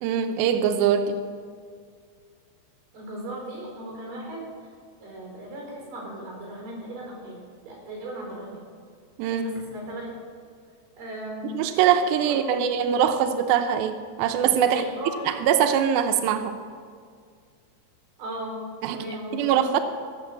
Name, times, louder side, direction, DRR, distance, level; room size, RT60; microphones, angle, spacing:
voice 1, 0.0-1.2 9.2-9.5 11.5-14.8 15.3-16.6 18.8-19.0 19.3-19.8, right 8 dB, 85° right, 8 dB, 2.1 m, -22 dB
voice 2, 2.9-4.7 5.0-7.4 7.6-8.6 9.3-10.1 11.0-11.5 12.2-12.9 14.7-15.3 18.2-18.6 18.9-19.7, right 1 dB, 50° right, -2 dB, 5.6 m, -37 dB
16.5 x 6.3 x 7.3 m, 2.1 s
omnidirectional pair, 5.0 m